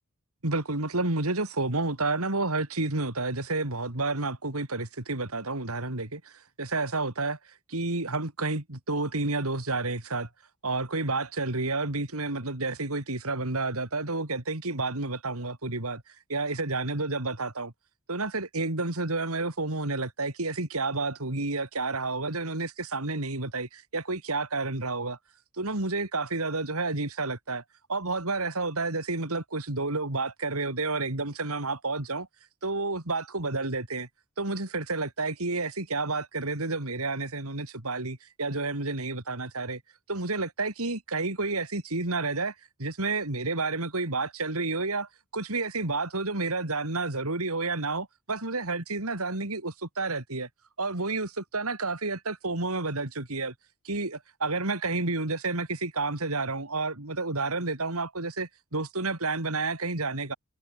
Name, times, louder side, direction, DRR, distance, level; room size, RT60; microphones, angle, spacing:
voice 1, 0.4-7.4 7.7-10.3 10.6-16.0 16.3-17.7 18.1-25.2 25.6-27.6 27.9-32.3 32.6-34.1 34.4-39.8 40.1-42.5 42.8-50.5 50.8-53.5 53.9-60.4, right 3 dB, 80° right, 3.5 m, -30 dB
head